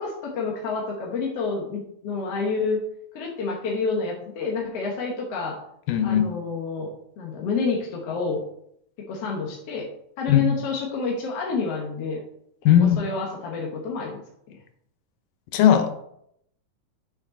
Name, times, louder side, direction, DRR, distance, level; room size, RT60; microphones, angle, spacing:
voice 1, 0.0-2.8 3.1-5.6 6.0-6.9 7.2-8.4 9.1-9.9 10.2-12.2 12.8-14.2 14.5-14.6, left 4 dB, 60° left, -2 dB, 1.9 m, -28 dB
voice 2, 5.9-6.3 10.3-10.5 12.7-13.0 15.5-16.1, left 10 dB, 85° left, 8 dB, 2.5 m, -18 dB
7.3 x 6.7 x 3.9 m, 0.72 s
omnidirectional pair, 3.7 m